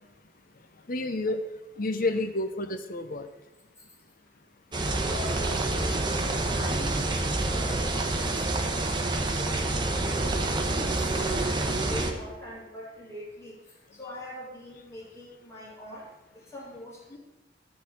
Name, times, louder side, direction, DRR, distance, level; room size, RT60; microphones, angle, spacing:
voice 1, 0.9-1.4 1.8-3.3, left 2 dB, 50° left, 8 dB, 0.8 m, -29 dB
sound 1, 4.7-12.1, right 2 dB, 25° right, 1.0 m, -27 dB
voice 2, 4.9-17.2, left 1 dB, 15° left, -6 dB, 3.2 m, -43 dB
10.5 x 4.1 x 7.4 m, 0.99 s
head